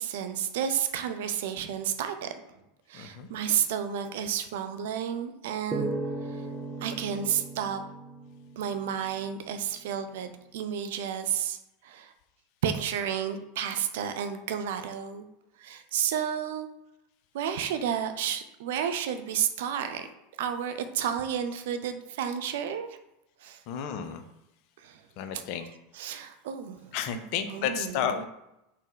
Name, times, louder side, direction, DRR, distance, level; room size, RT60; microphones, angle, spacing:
voice 1, 0.0-2.3 2.9-5.9 6.8-7.8 8.6-11.6 11.8-12.1 12.6-15.3 15.6-16.7 17.3-20.1 20.4-22.9 23.4-23.6 24.8-25.0 25.3-25.4 25.9-28.3, right 9 dB, 65° right, 9 dB, 0.3 m, -31 dB
voice 2, 2.9-3.3 23.7-24.2 25.2-25.7 26.9-28.3, left 8 dB, 55° left, 8 dB, 0.4 m, -32 dB
sound 1, 5.7-9.1, right 2 dB, 15° right, 0.6 m, -36 dB
4.0 x 2.0 x 3.8 m, 0.87 s
figure-of-eight pair, 80°, 0 cm